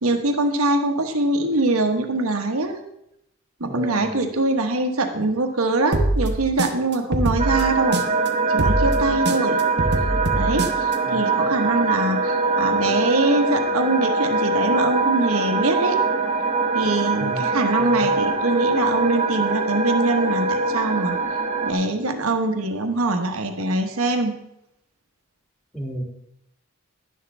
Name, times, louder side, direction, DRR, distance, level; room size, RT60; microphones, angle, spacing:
voice 1, 0.0-2.8 3.6-8.0 8.5-9.6 10.3-16.0 16.7-21.2 21.6-24.3, right 2 dB, 90° right, 5 dB, 1.2 m, -23 dB
voice 2, 3.7-4.2 11.1-11.2 17.2-17.4 17.8-18.1 25.7-26.0, right 1 dB, 5° left, 0 dB, 1.8 m, -33 dB
sound 1, 5.9-8.3 8.6-10.9, right 2 dB, 55° right, 0.9 m, -23 dB
sound 2, 7.4-21.7, right 3 dB, 30° right, 1.1 m, -22 dB
11.0 x 11.0 x 3.3 m, 0.80 s
head